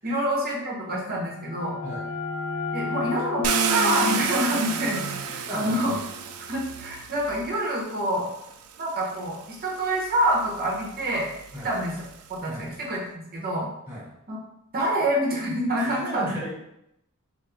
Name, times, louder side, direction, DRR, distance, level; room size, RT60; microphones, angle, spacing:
voice 1, 0.0-1.8 2.7-6.0 6.5-8.3 8.8-11.3 11.6-11.9 12.3-13.7 14.3-14.4 14.7-16.3, right 1 dB, 45° right, -3 dB, 0.9 m, -27 dB
sound 1, 1.1-6.6, left 5 dB, 55° left, 0.3 m, -33 dB
Car, 3.4-7.5 8.5-8.6 9.1-12.4, right 7 dB, 70° right, 0.3 m, -31 dB
voice 2, 5.5-5.8 11.5-11.7 12.5-12.7 13.9-14.1 15.7-16.5, equal, 10° right, -7 dB, 0.6 m, -35 dB
3.2 x 2.5 x 3.4 m, 0.82 s
head